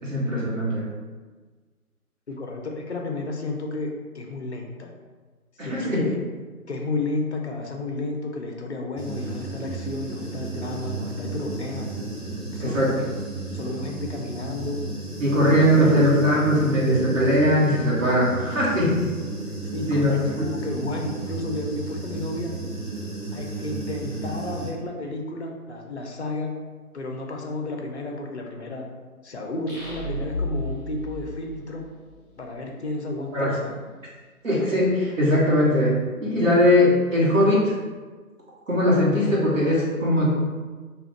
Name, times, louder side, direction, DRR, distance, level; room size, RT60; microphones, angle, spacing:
voice 1, 0.0-0.9 5.6-6.1 12.6-12.9 15.2-19.0 19.9-20.1 20.4-20.7 33.3-33.5 34.4-35.9 36.2-37.7 38.7-40.3, equal, 55° right, -5 dB, 1.1 m, -20 dB
voice 2, 2.3-4.9 5.6-6.2 6.7-11.9 12.4-13.1 13.5-14.8 15.4-16.3 16.6-17.0 19.4-22.6 23.3-26.5 26.9-28.9 29.2-31.8 32.4-33.8, left 2 dB, 50° left, 2 dB, 0.4 m, -32 dB
Human voice / Buzz, 9.0-24.7, right 2 dB, 25° right, 1.3 m, -34 dB
sound 1, 29.7-32.3, left 1 dB, 10° left, 0.9 m, -32 dB
2.3 x 2.3 x 3.4 m, 1.4 s
figure-of-eight pair, 145°, 45 cm